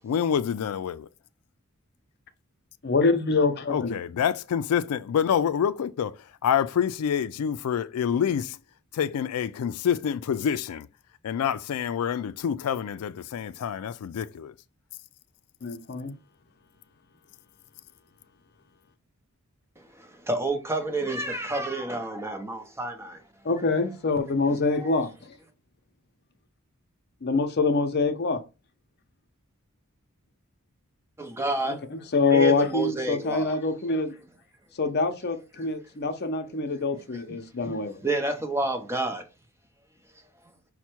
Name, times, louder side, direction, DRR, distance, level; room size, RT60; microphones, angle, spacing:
voice 1, 0.0-1.1 3.7-8.6 8.9-10.9 11.2-14.6, left 8 dB, 90° left, 0.3 m, -27 dB
voice 2, 2.8-3.9 15.6-16.1 23.4-25.3 27.2-28.4 31.7-34.1 34.8-38.0, left 3 dB, 50° left, 0.7 m, -25 dB
voice 3, 19.8-23.2 24.5-24.9 31.2-31.8 32.3-33.6 35.6-35.7 37.1-37.2 37.6-37.8 38.0-39.2, right 2 dB, 10° right, 0.7 m, -30 dB
5.5 x 2.2 x 4.4 m
head